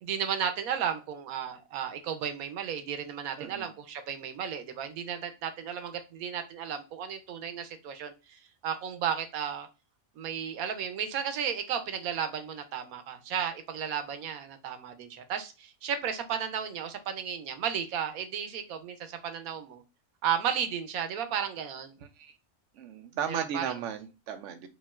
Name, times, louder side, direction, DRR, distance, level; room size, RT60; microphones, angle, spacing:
voice 1, 0.0-9.7 10.2-19.8 20.2-22.0 23.3-23.7, right 8 dB, 90° right, 8 dB, 1.1 m, -34 dB
voice 2, 3.4-3.7 22.2-22.4 22.8-24.7, right 8 dB, 65° right, 6 dB, 0.9 m, -35 dB
5.1 x 2.5 x 2.4 m, 0.28 s
omnidirectional pair, 1.5 m